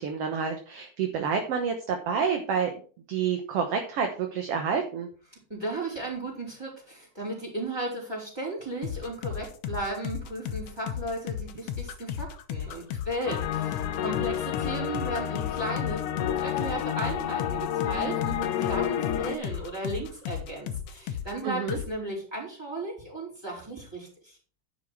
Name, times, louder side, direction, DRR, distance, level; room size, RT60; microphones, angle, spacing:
voice 1, 0.0-2.7 3.1-5.1 21.4-21.8, right 6 dB, 60° right, 5 dB, 1.7 m, -28 dB
voice 2, 5.5-24.4, right 1 dB, 5° right, -3 dB, 4.1 m, -35 dB
sound 1, 8.8-21.4 21.7-21.9, left 9 dB, 70° left, 1.5 m, -35 dB
sound 2, 13.3-19.4, left 10 dB, 85° left, 2.3 m, -30 dB
10.5 x 6.3 x 4.6 m, 0.40 s
omnidirectional pair, 3.7 m